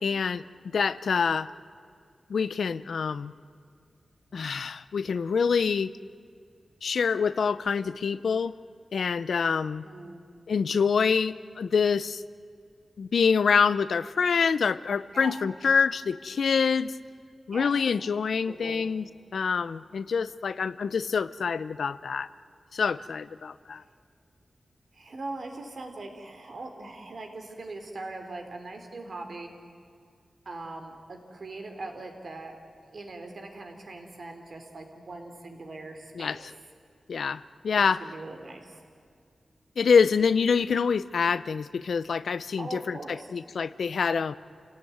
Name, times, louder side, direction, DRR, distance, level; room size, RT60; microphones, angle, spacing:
voice 1, 0.0-1.5 2.3-3.3 4.3-5.9 6.8-8.5 8.9-9.8 10.5-12.2 13.0-16.9 17.5-19.0 19.3-22.3 22.7-23.8 36.2-36.4 37.1-38.0 39.8-44.3, left 6 dB, 85° left, 16 dB, 0.6 m, -26 dB
voice 2, 9.8-10.2 15.1-15.3 17.5-17.7 18.4-18.9 23.8-23.9 24.9-29.5 30.4-32.6 32.9-36.4 37.8-38.8 42.6-43.3, right 2 dB, 55° right, 4 dB, 3.5 m, -41 dB
28.5 x 17.5 x 9.4 m, 2.2 s
wide cardioid pair, 125°, 0 cm